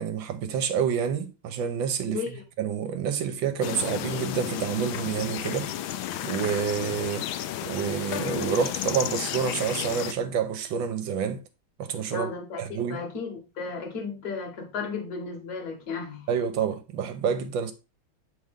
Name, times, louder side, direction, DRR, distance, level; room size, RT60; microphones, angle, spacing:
voice 1, 0.0-2.2 2.6-5.7 6.2-7.3 7.6-11.4 11.8-12.3 12.6-13.0 16.3-17.7, right 7 dB, 75° right, 1.5 m, -28 dB
voice 2, 2.1-2.4 12.1-16.3, left 5 dB, 50° left, 1.8 m, -34 dB
sound 1, 3.6-10.1, left 11 dB, 80° left, 1.3 m, -32 dB
7.6 x 4.0 x 3.6 m
omnidirectional pair, 2.2 m